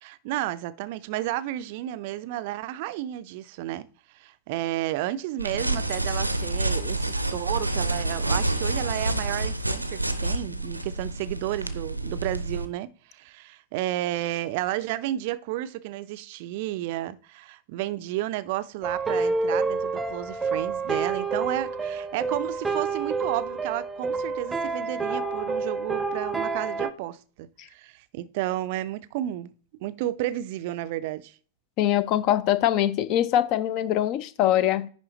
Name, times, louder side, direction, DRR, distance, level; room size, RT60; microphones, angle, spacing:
voice 1, 0.0-29.5 29.8-31.4, right 14 dB, 50° right, 0.5 m, -32 dB
sound 1, 5.4-12.6, right 2 dB, 85° right, 0.7 m, -28 dB
sound 2, 18.8-26.9, right 4 dB, 10° right, 0.7 m, -28 dB
voice 2, 31.8-34.9, left 12 dB, 40° left, 0.7 m, -23 dB
10.5 x 3.7 x 3.8 m
figure-of-eight pair, 90°, 0 cm